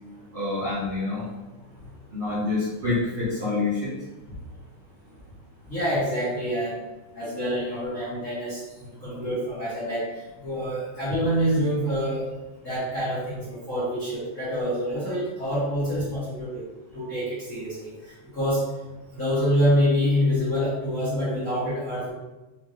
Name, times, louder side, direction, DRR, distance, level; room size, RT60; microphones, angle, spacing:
voice 1, 0.3-1.3 2.1-4.0, left 3 dB, 75° right, -8 dB, 1.1 m, -27 dB
voice 2, 5.7-6.8 7.1-8.6 8.8-10.0 10.4-12.2 12.6-16.6 16.9-17.9 18.3-18.6 19.1-22.1, equal, 40° left, -11 dB, 1.1 m, -26 dB
5.5 x 2.2 x 3.2 m, 1.0 s
omnidirectional pair, 3.7 m